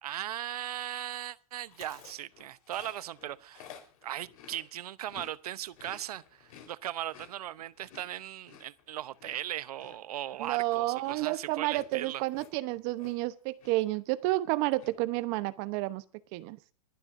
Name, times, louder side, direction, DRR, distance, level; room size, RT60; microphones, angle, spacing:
voice 1, 0.0-3.7 4.0-12.2, right 12 dB, 80° right, 0.9 m, -38 dB
Chewing mastication, 1.7-5.3 5.6-13.3 13.6-14.0 14.2-14.9, left 9 dB, 65° left, 4.4 m, -53 dB
voice 2, 10.4-16.0 16.3-16.6, right 19 dB, 45° right, 1.0 m, -30 dB
29.5 x 11.5 x 2.7 m
hypercardioid pair, 135°, 19 cm